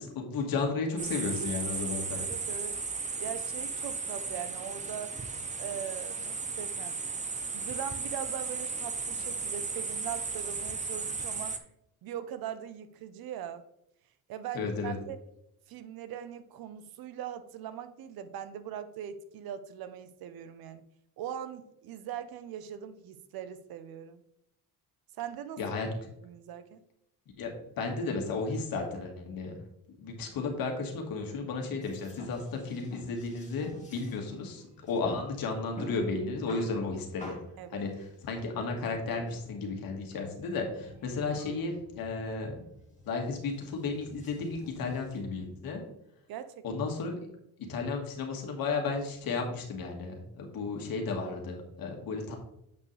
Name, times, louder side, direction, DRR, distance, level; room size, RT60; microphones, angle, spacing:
voice 1, 0.0-2.3 14.5-15.0 25.6-25.9 27.4-29.5 30.0-37.4 37.7-42.6 43.1-45.8 46.6-47.2 47.6-52.3, left 4 dB, 65° left, 2 dB, 1.9 m, -33 dB
sound 1, 1.0-11.6, right 4 dB, 20° right, 0.6 m, -35 dB
voice 2, 2.1-2.8 3.2-5.1 5.6-7.0 7.5-11.6 12.0-13.6 14.3-15.2 15.7-20.8 21.2-24.2 25.2-25.6 26.2-26.8 37.6-37.8 46.3-46.6, right 9 dB, 65° right, 12 dB, 0.8 m, -41 dB
sound 2, 31.8-45.2, left 2 dB, 20° left, 2.0 m, -50 dB
8.1 x 5.4 x 3.3 m, 0.78 s
cardioid pair, 115°, 38 cm